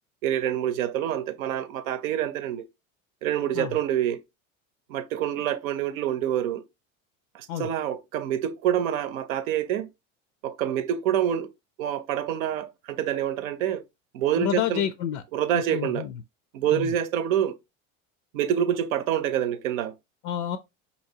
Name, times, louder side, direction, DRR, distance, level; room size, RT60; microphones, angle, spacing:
voice 1, 0.2-2.7 3.2-4.2 4.9-6.6 7.3-9.9 10.4-11.5 11.8-13.8 14.1-14.8 15.3-16.0 16.5-17.6 18.3-19.9, right 10 dB, 85° right, 0.7 m, -26 dB
voice 2, 14.4-15.2 15.5-16.2 16.7-17.0 20.2-20.6, left 10 dB, 70° left, 0.5 m, -29 dB
4.2 x 2.8 x 2.7 m
hypercardioid pair, 90°, 40 cm